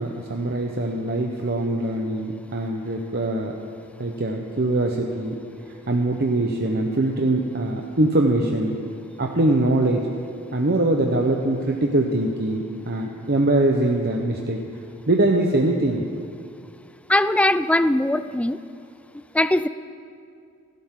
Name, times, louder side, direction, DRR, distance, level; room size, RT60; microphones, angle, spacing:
voice 1, 0.0-3.5 4.0-5.4 5.7-8.8 9.2-10.1 10.5-14.6 15.1-16.0, right 2 dB, 50° right, 1 dB, 1.0 m, -22 dB
voice 2, 17.1-18.6 19.3-19.7, left 1 dB, 5° left, 13 dB, 0.4 m, -20 dB
28.0 x 12.0 x 3.8 m, 2.4 s
head